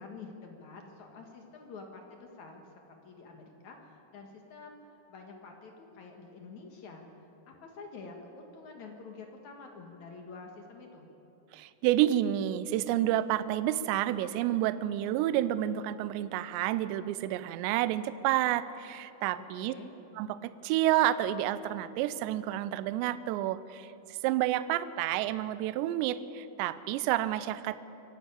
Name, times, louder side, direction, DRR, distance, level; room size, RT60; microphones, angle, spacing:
voice 1, 0.0-7.1 7.5-11.1 19.3-19.9, left 4 dB, 55° left, 2 dB, 2.2 m, -48 dB
voice 2, 11.5-19.7 20.2-27.8, right 13 dB, 80° right, 14 dB, 2.8 m, -29 dB
25.5 x 12.0 x 8.8 m, 2.9 s
omnidirectional pair, 5.3 m